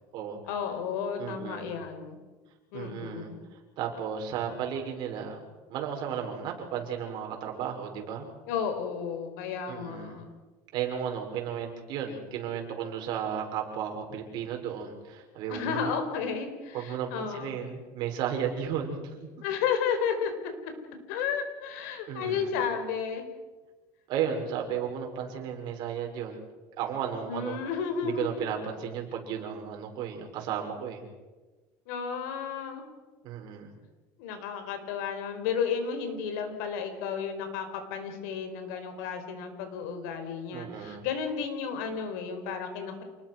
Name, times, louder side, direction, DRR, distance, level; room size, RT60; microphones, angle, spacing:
voice 1, 0.5-2.2 2.7-3.4 8.5-10.3 15.5-17.5 19.4-20.5 21.1-23.3 27.3-28.5 31.9-32.9 34.2-43.0, left 6 dB, 85° left, 7 dB, 5.0 m, -32 dB
voice 2, 1.2-1.7 2.7-5.4 5.7-8.3 9.7-10.2 10.7-15.9 16.7-19.3 22.1-22.5 24.1-26.4 26.8-27.6 28.0-31.1 33.2-33.7 40.5-41.1, right 8 dB, 55° right, 2 dB, 6.0 m, -34 dB
28.5 x 20.5 x 6.3 m, 1.2 s
cardioid pair, 140°, 9 cm